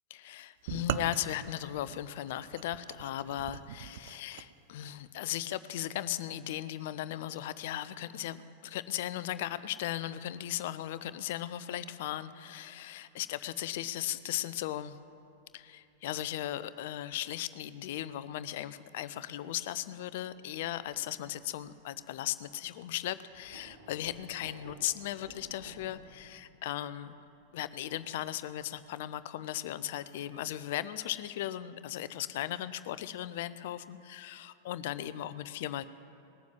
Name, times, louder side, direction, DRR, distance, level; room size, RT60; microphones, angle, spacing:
voice 1, 0.1-15.0 15.5-27.1 27.5-35.8, left 13 dB, 55° left, 14 dB, 0.5 m, -37 dB
sound 1, 0.7-4.5, right 12 dB, 55° right, 0.4 m, -40 dB
sound 2, 15.4-15.6 15.9-16.9 17.3-17.4 20.3-29.0, right 1 dB, 80° right, 2.2 m, -57 dB
19.0 x 7.2 x 7.5 m, 2.7 s
figure-of-eight pair, 90°, 0 cm